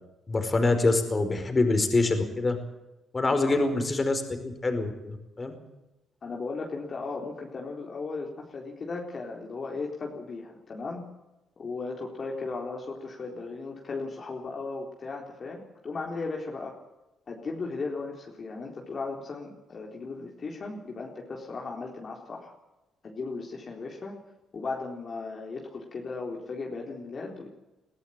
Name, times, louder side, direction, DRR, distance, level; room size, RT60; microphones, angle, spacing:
voice 1, 0.3-2.6 3.1-5.6, left 3 dB, 30° left, 7 dB, 4.8 m, -25 dB
voice 2, 3.3-3.8 6.2-11.1 11.6-16.8 17.3-22.5 23.0-24.2 24.5-27.5, left 3 dB, 50° left, 0 dB, 4.0 m, -36 dB
22.0 x 14.5 x 9.1 m, 0.98 s
supercardioid pair, 65°, 0 cm